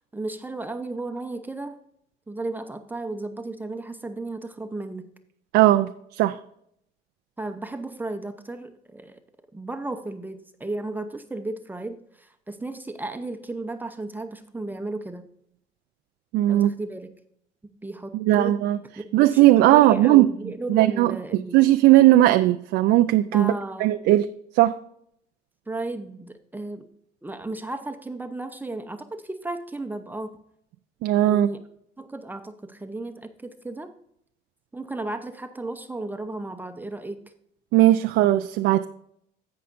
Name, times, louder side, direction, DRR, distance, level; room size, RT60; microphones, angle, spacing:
voice 1, 0.1-1.8 2.3-5.1 7.4-9.2 9.5-15.3 16.5-17.1 17.8-18.6 19.3-19.4 19.7-21.6 23.3-23.9 25.7-26.9 27.2-30.4 31.2-31.6 32.0-33.9 34.7-37.2, right 2 dB, 10° right, 7 dB, 0.7 m, -34 dB
voice 2, 5.5-6.4 16.3-16.7 18.2-18.8 19.1-20.3 20.7-21.1 21.5-23.5 23.8-24.3 24.6-24.7 31.0-31.5 37.7-38.9, right 15 dB, 85° right, 9 dB, 0.4 m, -17 dB
16.5 x 5.6 x 2.6 m, 0.71 s
cardioid pair, 110°, 17 cm